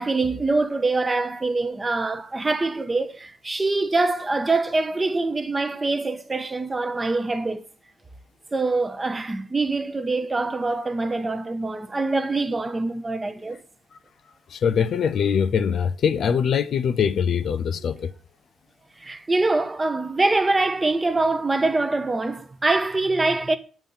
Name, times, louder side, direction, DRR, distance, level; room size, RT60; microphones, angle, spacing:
voice 1, 0.0-7.6 8.5-13.6 19.0-23.6, right 3 dB, 20° right, 0.5 m, -24 dB
voice 2, 14.5-18.1, left 7 dB, 60° left, 0.4 m, -22 dB
7.1 x 2.7 x 5.4 m
cardioid pair, 90°, 0 cm